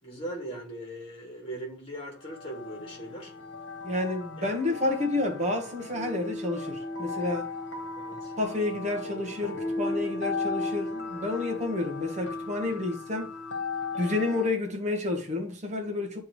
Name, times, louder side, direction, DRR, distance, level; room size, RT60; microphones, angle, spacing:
voice 1, 0.0-3.3 4.4-4.5 8.0-8.3, right 1 dB, 30° left, 2.4 m, -39 dB
sound 1, 2.2-14.5, left 3 dB, 65° left, 1.3 m, -36 dB
voice 2, 3.8-7.5 8.4-13.3 14.0-16.3, left 2 dB, 35° right, 1.4 m, -30 dB
9.5 x 3.5 x 3.2 m
head